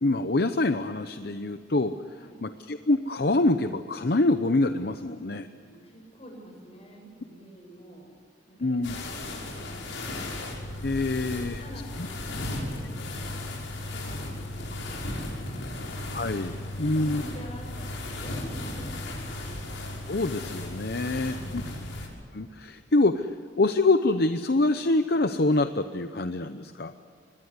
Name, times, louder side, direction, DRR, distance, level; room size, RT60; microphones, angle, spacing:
voice 1, 0.0-2.0 2.4-5.5 8.6-8.9 10.8-11.6 16.1-17.2 20.1-21.6 22.3-23.3 23.6-26.9, left 2 dB, 55° left, 9 dB, 0.8 m, -25 dB
voice 2, 5.6-8.1 8.5-10.3 11.0-15.8 16.7-19.6 20.9-21.8, equal, 35° left, 2 dB, 7.6 m, -47 dB
sound 1, 8.8-22.1, left 1 dB, 85° left, 6.3 m, -35 dB
25.5 x 21.0 x 8.1 m, 2.3 s
head